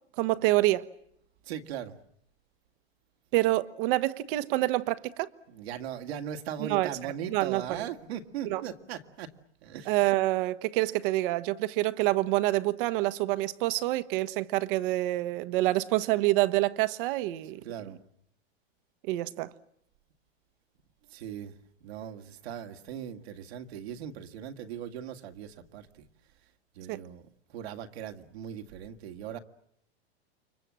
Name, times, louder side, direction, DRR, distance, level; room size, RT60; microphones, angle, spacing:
voice 1, 0.2-0.9 3.3-5.3 6.6-6.9 7.3-7.6 8.5-8.6 9.9-17.6 19.1-19.5 26.9-27.0, right 18 dB, 50° right, 1.3 m, -27 dB
voice 2, 1.4-2.0 5.5-9.3 9.6-10.0 17.6-18.0 21.1-26.1 26.8-27.2 27.5-29.4, right 9 dB, 70° right, 2.2 m, -39 dB
29.5 x 24.5 x 7.6 m
hypercardioid pair, 130°, 33 cm